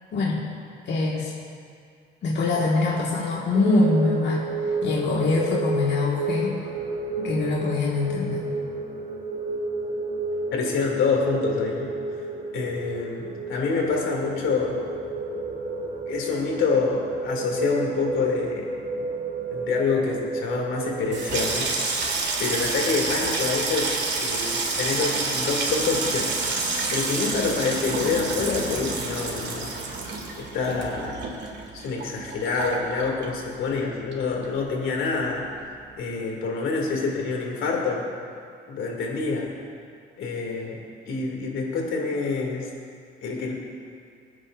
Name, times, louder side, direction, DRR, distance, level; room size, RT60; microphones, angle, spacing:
voice 1, 0.1-0.4 0.9-1.3 2.2-4.5 4.8-6.7 7.2-8.4, left 3 dB, 60° left, -5 dB, 2.0 m, -23 dB
sound 1, 3.5-21.4, right 2 dB, 45° right, 3.3 m, -31 dB
voice 2, 10.5-11.9 12.5-14.8 16.1-18.7 19.0-19.1 19.5-21.7 22.4-23.9 24.2-26.3 26.9-29.7 30.4-31.2 31.7-35.4 36.0-38.0 38.7-39.5 40.2-40.8 41.1-42.7 43.2-43.5, left 4 dB, 80° left, -1 dB, 2.8 m, -26 dB
Water tap faucet / Sink (filling or washing), 21.0-33.8 34.1-34.8 35.0-35.4, right 3 dB, 60° right, 2.6 m, -28 dB
26.0 x 9.9 x 2.7 m, 2.2 s
cardioid pair, 90°, 20 cm